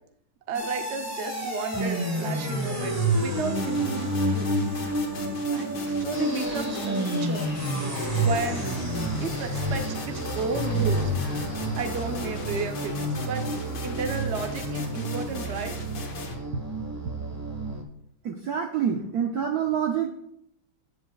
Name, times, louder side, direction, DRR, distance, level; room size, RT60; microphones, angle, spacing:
sound 1, 0.5-17.8, right 1 dB, 15° right, 0.6 m, -29 dB
voice 1, 0.5-4.5 5.5-7.5 8.2-8.7 9.2-11.1 11.8-13.5 13.8-15.7, right 5 dB, 90° right, 6 dB, 0.6 m, -33 dB
sound 2, 3.6-16.4, left 3 dB, 70° left, 2.1 m, -39 dB
sound 3, 10.2-15.6, left 4 dB, 45° left, 1.1 m, -47 dB
voice 2, 18.2-20.1, right 8 dB, 65° right, 3 dB, 1.0 m, -27 dB
13.5 x 7.7 x 2.3 m, 0.74 s
omnidirectional pair, 2.2 m